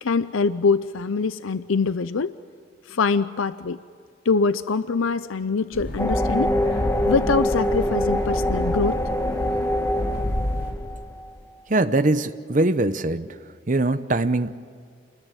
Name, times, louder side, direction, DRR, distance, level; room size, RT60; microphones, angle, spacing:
voice 1, 0.0-2.3 2.9-3.8 4.2-6.5 7.0-9.0, left 4 dB, 85° left, 14 dB, 0.6 m, -23 dB
sound 1, 5.7-10.7, equal, 50° left, 4.9 m, -29 dB
sound 2, 6.0-11.3, left 1 dB, 15° left, 1.3 m, -25 dB
voice 2, 11.7-13.4 13.7-14.5, right 2 dB, 40° right, 11 dB, 0.8 m, -22 dB
28.0 x 21.0 x 9.3 m, 2.1 s
head